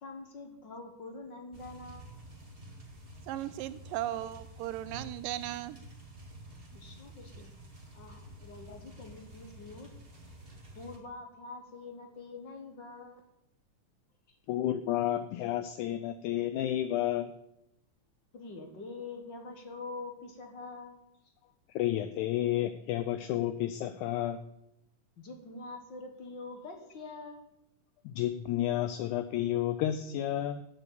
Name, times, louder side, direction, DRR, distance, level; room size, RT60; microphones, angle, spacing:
voice 1, 0.0-2.1 6.7-7.5 7.9-9.9 10.7-13.2 14.3-14.4 18.3-21.0 25.2-27.5, left 3 dB, 50° left, 4 dB, 1.4 m, -45 dB
sound 1, 1.5-11.0, right 1 dB, 30° right, 1.1 m, -50 dB
voice 2, 3.2-5.8 7.4-7.5, right 13 dB, 85° right, 14 dB, 2.2 m, -37 dB
voice 3, 14.5-17.3 21.8-24.4 28.1-30.6, left 12 dB, 80° left, 10 dB, 1.8 m, -31 dB
11.5 x 7.1 x 8.3 m, 0.82 s
omnidirectional pair, 3.9 m